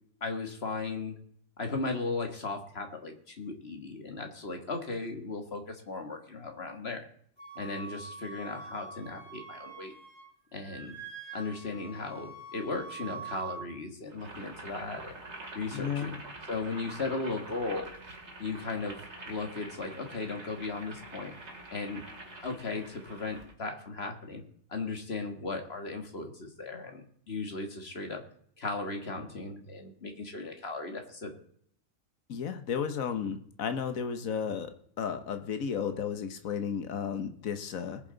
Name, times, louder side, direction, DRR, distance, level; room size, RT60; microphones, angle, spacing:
voice 1, 0.2-1.2 1.6-7.1 7.6-9.9 10.5-10.9 11.3-15.2 15.5-16.2 16.5-17.9 18.4-21.3 21.7-22.0 22.4-24.4 24.7-28.2 28.6-31.3, left 3 dB, 50° left, 5 dB, 2.0 m, -36 dB
Wind instrument woodwind instrument, 7.4-10.3 10.6-13.6, right 4 dB, 20° left, 3.9 m, -44 dB
Boiling, 14.1-23.5, right 2 dB, 55° right, 2.4 m, -46 dB
voice 2, 15.7-16.1 32.3-34.7 35.0-38.0, left 7 dB, 85° left, 8 dB, 1.5 m, -33 dB
20.5 x 7.3 x 4.0 m, 0.63 s
omnidirectional pair, 1.4 m